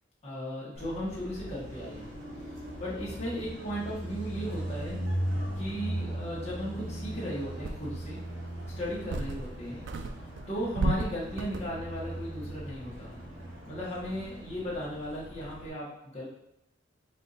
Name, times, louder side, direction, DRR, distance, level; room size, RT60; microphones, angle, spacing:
voice 1, 0.2-2.1 2.5-5.0 5.6-8.2 8.8-9.9 10.5-13.1 13.7-16.2, equal, 35° left, -8 dB, 1.1 m, -36 dB
Car passing by, 0.7-15.7, equal, 80° right, 1.5 m, -38 dB
sound 1, 7.0-7.1 7.6-8.2 8.7-9.6 9.9-11.9, right 3 dB, 60° right, 0.3 m, -34 dB
4.3 x 2.6 x 3.9 m, 0.84 s
head